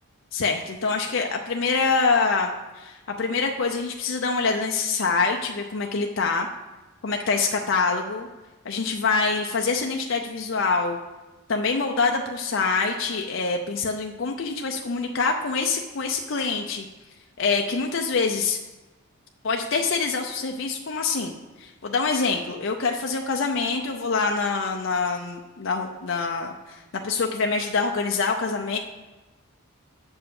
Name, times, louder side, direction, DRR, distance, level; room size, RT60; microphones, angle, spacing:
voice 1, 0.3-6.5 7.0-8.3 8.6-11.0 11.5-16.8 17.4-18.6 19.4-28.8, left 4 dB, 60° left, 2 dB, 0.5 m, -25 dB
6.9 x 5.5 x 7.0 m, 1.1 s
head